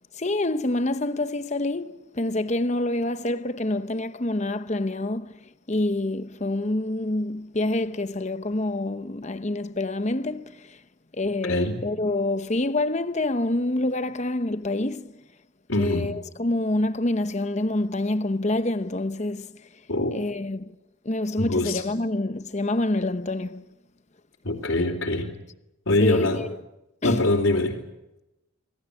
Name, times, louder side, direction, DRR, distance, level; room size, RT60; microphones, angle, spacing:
voice 1, 0.2-10.8 11.1-15.1 15.8-19.6 20.1-20.7 21.0-23.6 26.0-26.5 27.0-27.3, left 2 dB, 35° left, 0.9 m, -27 dB
voice 2, 11.4-11.8 15.7-16.1 19.9-20.2 21.4-21.8 24.4-25.3 25.9-26.4 27.0-27.8, left 2 dB, 75° left, 3.2 m, -23 dB
26.5 x 18.5 x 8.3 m
head